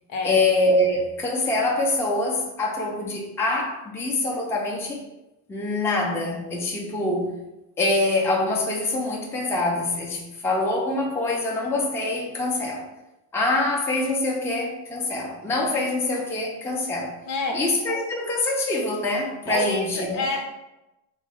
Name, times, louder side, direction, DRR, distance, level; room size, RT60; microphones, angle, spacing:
voice 1, 0.2-5.0 5.5-7.4 7.8-12.9 13.3-17.1 17.5-20.3, left 2 dB, 5° left, -2 dB, 0.5 m, -25 dB
voice 2, 17.3-17.6 19.5-20.5, left 2 dB, 60° left, 2 dB, 0.8 m, -27 dB
3.0 x 2.1 x 3.6 m, 0.97 s
supercardioid pair, 70°, 49 cm